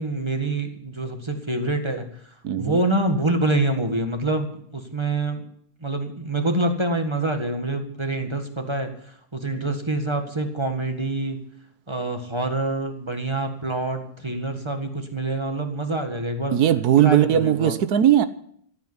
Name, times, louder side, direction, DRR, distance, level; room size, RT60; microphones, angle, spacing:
voice 1, 0.0-2.2 2.6-5.4 5.8-11.4 11.9-16.6 17.0-17.8, right 2 dB, 20° right, 6 dB, 1.7 m, -26 dB
voice 2, 2.4-2.8 16.5-18.3, right 10 dB, 75° right, 13 dB, 1.4 m, -18 dB
15.5 x 8.5 x 9.8 m, 0.65 s
omnidirectional pair, 1.7 m